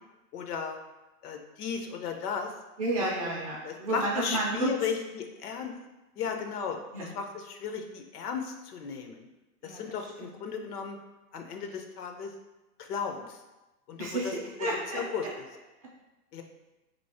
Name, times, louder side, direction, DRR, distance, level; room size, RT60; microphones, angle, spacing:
voice 1, 0.3-0.8 1.2-2.5 3.0-3.3 3.6-5.7 6.2-9.3 9.6-11.0 11.3-12.3 12.8-13.4 13.9-14.3 14.9-15.2 16.3-16.4, left 6 dB, 75° left, 4 dB, 0.7 m, -35 dB
voice 2, 2.8-4.7 6.9-7.1 9.6-9.8 10.2-10.4 14.0-15.0, right 2 dB, 25° right, -3 dB, 0.4 m, -31 dB
3.0 x 2.7 x 4.2 m, 1.0 s
hypercardioid pair, 130°, 46 cm